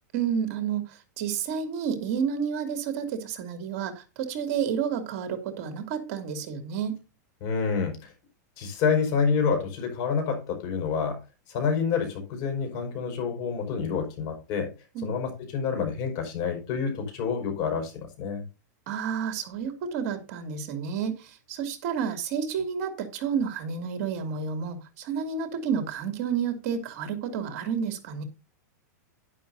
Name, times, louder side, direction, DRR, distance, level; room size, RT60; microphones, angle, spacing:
voice 1, 0.1-7.0 14.9-15.1 18.9-28.2, right 7 dB, 50° right, 7 dB, 2.8 m, -30 dB
voice 2, 7.4-8.1 8.6-11.2 11.5-14.7 15.0-18.5, left 6 dB, 40° left, 5 dB, 5.4 m, -28 dB
11.5 x 10.5 x 2.8 m, 0.29 s
supercardioid pair, 155°, 10 cm